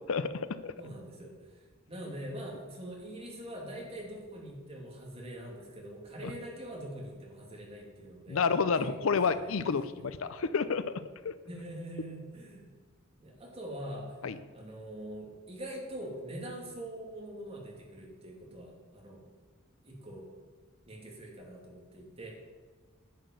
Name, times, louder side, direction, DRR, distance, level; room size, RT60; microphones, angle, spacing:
voice 1, 0.1-0.7 6.2-6.3 8.3-10.9 11.2-11.4 14.2-14.4, left 5 dB, 65° left, 13 dB, 0.5 m, -30 dB
voice 2, 0.8-1.4 1.9-8.4 8.8-10.1 11.5-12.6 13.2-14.2 14.5-19.2 19.8-20.3 20.9-22.3, right 1 dB, 30° right, -2 dB, 2.8 m, -43 dB
10.5 x 6.7 x 7.7 m, 1.5 s
head